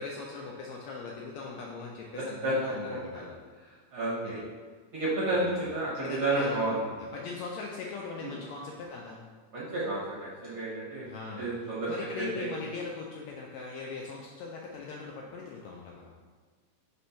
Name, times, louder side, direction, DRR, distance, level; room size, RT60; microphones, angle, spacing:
voice 1, 0.0-3.3 4.2-4.3 5.3-5.6 5.9-9.2 11.1-16.1, left 4 dB, 80° left, -1 dB, 1.6 m, -40 dB
voice 2, 2.1-2.5 3.9-4.4 4.9-6.8 8.2-8.3 9.5-11.0 11.4-11.9 12.2-12.5, right 2 dB, 55° right, -8 dB, 1.6 m, -31 dB
4.3 x 4.1 x 5.6 m, 1.5 s
omnidirectional pair, 3.6 m